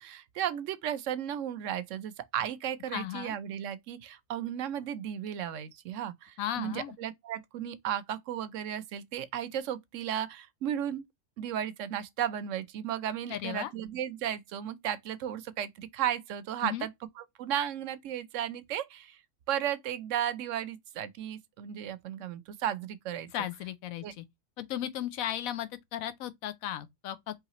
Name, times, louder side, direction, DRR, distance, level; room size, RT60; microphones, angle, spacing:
voice 1, 0.0-11.0 11.4-19.2 19.5-23.3 24.0-24.1, right 10 dB, 70° right, 0.9 m, -34 dB
voice 2, 2.9-3.3 6.4-6.9 13.3-13.7 16.6-16.9 23.3-24.2 24.6-27.3, left 11 dB, 85° left, 1.0 m, -35 dB
4.7 x 3.2 x 2.9 m
omnidirectional pair, 1.4 m